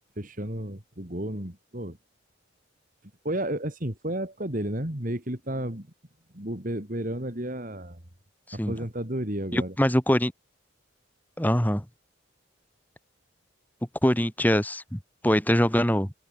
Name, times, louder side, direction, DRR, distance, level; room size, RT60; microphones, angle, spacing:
voice 1, 0.2-2.0 3.2-5.9 6.3-8.0 8.5-9.7, right 1 dB, 40° right, 2.9 m, -32 dB
voice 2, 9.5-10.3 11.4-11.8 14.0-16.1, equal, 10° left, 2.3 m, -23 dB
head